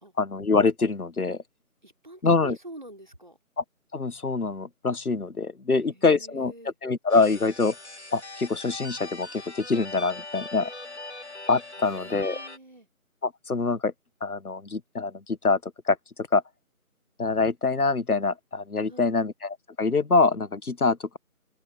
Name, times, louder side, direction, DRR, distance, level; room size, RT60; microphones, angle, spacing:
voice 1, 0.2-1.4 2.2-2.6 3.6-3.7 3.9-6.5 6.8-7.7 8.1-10.7 11.5-12.4 13.2-13.9 14.2-16.4 17.2-21.2, left 4 dB, 80° left, 1.2 m, -25 dB
voice 2, 1.8-3.4 5.7-6.8 11.8-12.9 18.9-19.2, right 1 dB, 30° right, 3.2 m, -46 dB
sound 1, 7.1-12.6, left 2 dB, 50° left, 1.2 m, -41 dB
open air
figure-of-eight pair, 175°, 44 cm